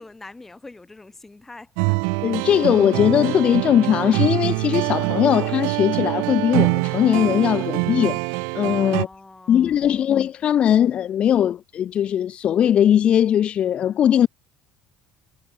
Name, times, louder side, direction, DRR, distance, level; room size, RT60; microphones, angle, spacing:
voice 1, 0.0-2.0 8.9-10.1, left 2 dB, 10° left, 7.6 m, -44 dB
sound 1, 1.8-9.1, right 40 dB or more, 80° right, 1.0 m, -24 dB
voice 2, 2.2-9.1 9.5-14.3, left 10 dB, 35° left, 1.9 m, -19 dB
cardioid pair, 165°, 3 cm